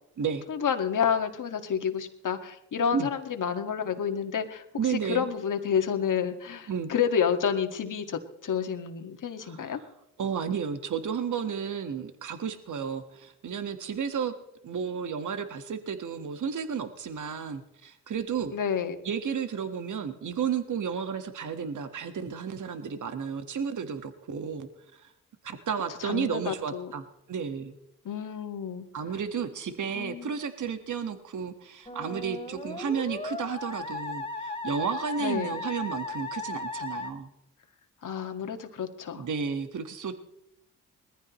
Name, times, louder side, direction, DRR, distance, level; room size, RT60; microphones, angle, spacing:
voice 1, 0.5-9.8 18.5-19.0 26.0-26.9 28.1-28.9 29.9-30.4 35.2-35.6 38.0-39.3, left 7 dB, 60° left, 6 dB, 1.9 m, -29 dB
voice 2, 4.7-5.3 6.7-6.9 9.4-9.7 10.2-14.3 14.6-18.5 19.0-25.1 25.4-27.7 28.9-37.3 39.1-40.3, right 7 dB, 55° right, 8 dB, 1.6 m, -32 dB
Musical instrument, 31.9-37.1, left 3 dB, 15° left, 3.4 m, -36 dB
20.5 x 14.5 x 3.1 m, 0.83 s
supercardioid pair, 60°, 36 cm